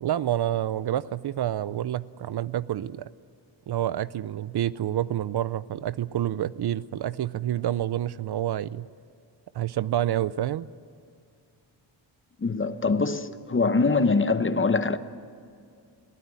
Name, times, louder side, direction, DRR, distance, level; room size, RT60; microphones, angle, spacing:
voice 1, 0.0-3.1 3.7-8.9 9.5-10.7, right 12 dB, 60° right, 0.6 m, -28 dB
voice 2, 12.4-15.0, left 4 dB, 25° left, 0.9 m, -23 dB
22.5 x 16.5 x 9.4 m
wide cardioid pair, 100°, 45 cm